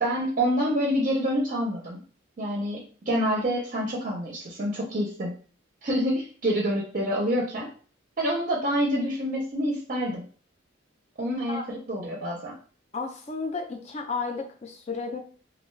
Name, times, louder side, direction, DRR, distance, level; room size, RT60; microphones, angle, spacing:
voice 1, 0.0-2.0 2.4-5.3 5.8-7.7 8.2-10.2 11.2-12.5, equal, 40° right, -2 dB, 0.5 m, -27 dB
voice 2, 12.9-15.2, left 4 dB, 35° left, 3 dB, 0.4 m, -33 dB
2.4 x 2.2 x 3.1 m, 0.41 s
head